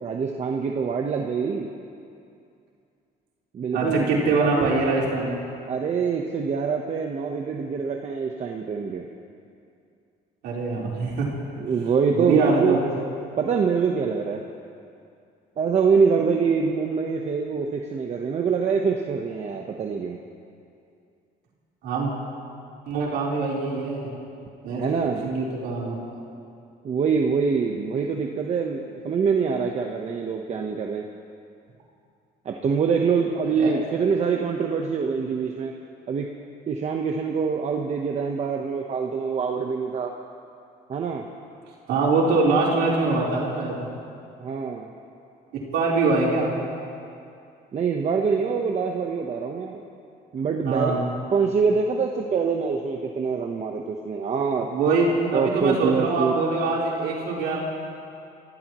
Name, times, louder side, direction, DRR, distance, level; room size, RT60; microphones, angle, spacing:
voice 1, 0.0-1.7 3.5-4.8 5.7-9.1 11.6-12.8 13.4-14.4 15.6-20.2 24.8-25.2 26.8-31.0 32.4-35.7 36.1-36.3 36.7-40.1 40.9-41.2 44.4-44.9 47.7-49.8 50.3-50.9 51.3-54.7 55.3-56.3, right 5 dB, 40° right, 2 dB, 1.1 m, -25 dB
voice 2, 3.7-5.4 10.4-11.3 12.1-12.8 21.8-22.1 22.9-24.1 24.6-24.9 25.2-25.9 33.6-33.7 41.9-43.9 45.7-46.5 50.6-51.1 54.6-57.6, right 3 dB, 85° right, -5 dB, 4.1 m, -23 dB
27.0 x 16.0 x 3.1 m, 2.5 s
cardioid pair, 110°, 17 cm